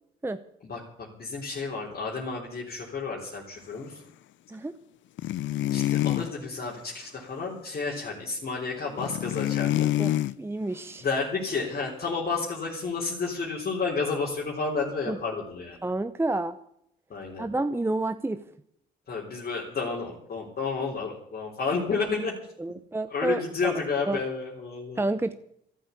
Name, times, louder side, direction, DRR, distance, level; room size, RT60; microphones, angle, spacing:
voice 1, 1.2-4.0 5.7-9.9 11.0-15.8 17.1-17.5 19.1-22.3 23.1-25.0, left 4 dB, 50° left, -3 dB, 3.9 m, -31 dB
sound 1, 5.2-6.3 9.0-10.3, left 14 dB, 70° left, 0.5 m, -26 dB
voice 2, 10.4-11.0 15.1-15.2 15.8-16.6 17.4-18.4 22.6-24.2 25.0-25.3, right 2 dB, 10° right, 10 dB, 0.8 m, -29 dB
13.5 x 11.5 x 8.3 m, 0.72 s
cardioid pair, 90°, 20 cm